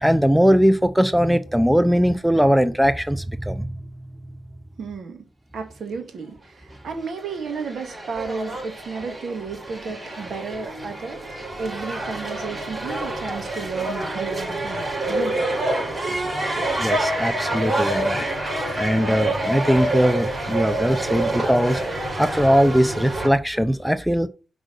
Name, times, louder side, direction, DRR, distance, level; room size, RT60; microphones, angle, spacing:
voice 1, 0.0-3.9 16.8-18.2 18.7-24.3, equal, ahead, 0.6 m, -20 dB
voice 2, 4.8-5.2 5.5-11.2 11.6-15.6 16.1-16.2 16.5-16.7, right 5 dB, 70° right, 2.2 m, -33 dB
sound 1, 7.2-23.3, right 1 dB, 35° right, 4.8 m, -27 dB
6.1 x 5.0 x 6.7 m
cardioid pair, 70°, 0 cm